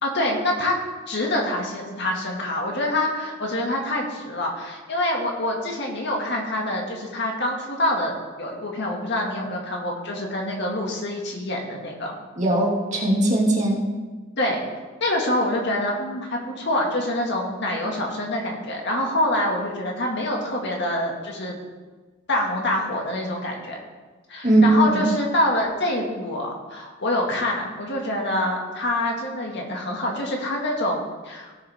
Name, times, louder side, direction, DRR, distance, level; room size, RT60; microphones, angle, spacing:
voice 1, 0.0-0.8 1.1-12.1 14.4-14.6 15.0-21.6 22.3-23.8 24.3-31.5, left 1 dB, 55° left, 0 dB, 2.1 m, -26 dB
voice 2, 12.4-13.9 24.4-25.1, right 1 dB, 35° right, -3 dB, 2.4 m, -19 dB
17.0 x 6.9 x 3.6 m, 1.3 s
head